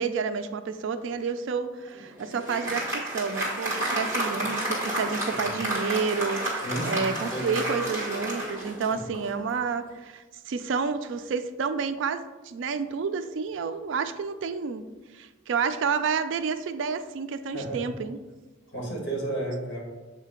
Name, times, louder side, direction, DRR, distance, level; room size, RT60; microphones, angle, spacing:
voice 1, 0.0-14.8 15.1-18.2, right 5 dB, 65° right, 10 dB, 0.4 m, -30 dB
Applause, 1.9-9.4, right 1 dB, 15° right, 1.6 m, -31 dB
voice 2, 6.6-7.5 8.9-9.0 17.5-17.8 18.7-19.8, right 1 dB, 55° left, -2 dB, 1.8 m, -32 dB
7.3 x 2.8 x 4.9 m, 1.2 s
head